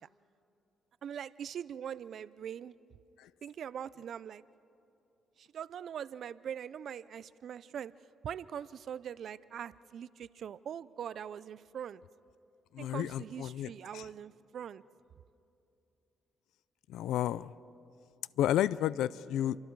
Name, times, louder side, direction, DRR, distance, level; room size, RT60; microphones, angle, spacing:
voice 1, 1.0-2.7 3.4-4.4 5.4-7.9 8.2-12.0 12.8-14.8, right 8 dB, 60° right, 18 dB, 0.5 m, -42 dB
voice 2, 12.7-14.1 16.9-17.5 18.4-19.6, left 12 dB, 85° left, 19 dB, 0.4 m, -32 dB
29.0 x 24.0 x 4.7 m, 2.8 s
cardioid pair, 90°, 0 cm